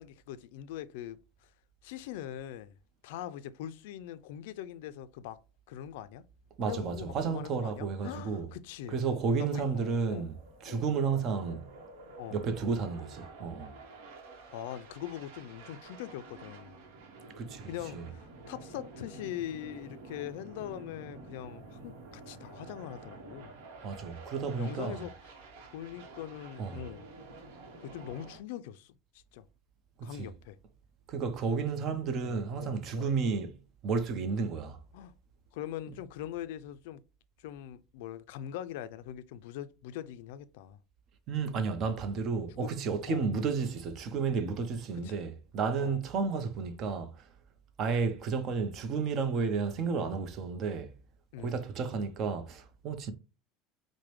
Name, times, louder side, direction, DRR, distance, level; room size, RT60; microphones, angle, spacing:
voice 1, 0.0-1.5 1.8-2.8 3.0-5.4 5.7-6.2 6.7-9.0 9.4-10.3 10.7-10.9 12.2-12.4 14.5-16.8 17.7-23.5 24.6-25.1 25.4-27.1 27.8-29.0 29.3-29.4 30.0-30.6 32.2-33.1 34.9-35.1 35.5-37.0 37.4-40.8 42.5-42.7 43.1-43.2 45.0-45.2 45.8-46.0 51.3-51.6, left 11 dB, 80° left, 0.3 m, -42 dB
voice 2, 6.6-8.5 8.9-10.4 10.6-11.7 12.3-13.8 17.4-18.0 23.8-25.1 26.6-26.8 30.0-30.3 31.1-33.5 33.8-34.8 41.3-47.3 47.8-50.9 51.4-53.1, right 5 dB, 45° right, 0.7 m, -32 dB
sound 1, 10.0-28.4, right 3 dB, 80° right, 0.9 m, -50 dB
4.7 x 2.1 x 3.1 m
supercardioid pair, 125°, 0 cm